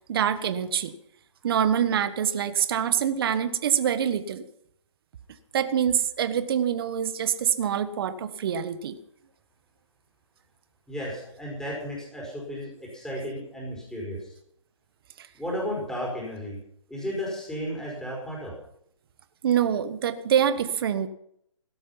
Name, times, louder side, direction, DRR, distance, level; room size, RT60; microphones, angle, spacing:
voice 1, 0.1-0.9 1.4-4.4 5.5-9.0 15.2-15.3 19.4-21.1, right 9 dB, 45° right, 11 dB, 1.4 m, -25 dB
voice 2, 10.9-14.3 15.4-16.6 16.9-18.6, equal, 5° left, -3 dB, 5.2 m, -34 dB
17.0 x 12.0 x 5.7 m, 0.72 s
hypercardioid pair, 150°, 17 cm